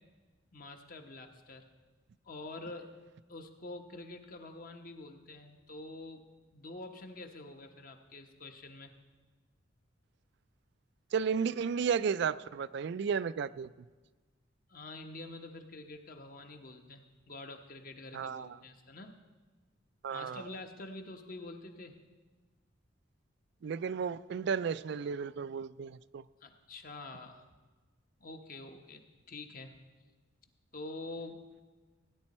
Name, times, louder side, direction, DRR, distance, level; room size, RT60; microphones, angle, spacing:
voice 1, 0.5-1.6 2.2-3.0 3.3-6.3 6.5-8.9 14.7-19.2 20.1-22.0 26.4-27.4 28.2-29.0 29.3-29.8 30.7-31.4, left 2 dB, 50° left, 5 dB, 1.1 m, -46 dB
voice 2, 11.1-13.7 18.1-18.5 20.0-20.4 23.6-26.2, right 6 dB, 60° right, 16 dB, 0.3 m, -33 dB
17.5 x 9.9 x 4.3 m, 1.3 s
head